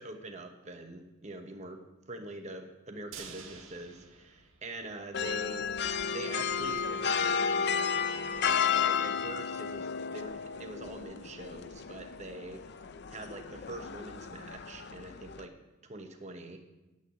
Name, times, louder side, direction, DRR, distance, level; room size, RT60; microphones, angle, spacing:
voice 1, 0.0-1.8 2.1-5.7 6.1-12.6 13.1-15.5 15.8-16.6, right 2 dB, 35° right, 4 dB, 1.0 m, -44 dB
sound 1, 3.1-5.3 5.6-5.7 6.0-6.1, right 6 dB, 90° right, 1.6 m, -49 dB
sound 2, 5.1-15.5, left 6 dB, 55° left, 0.5 m, -33 dB
9.8 x 8.0 x 8.4 m, 1.1 s
head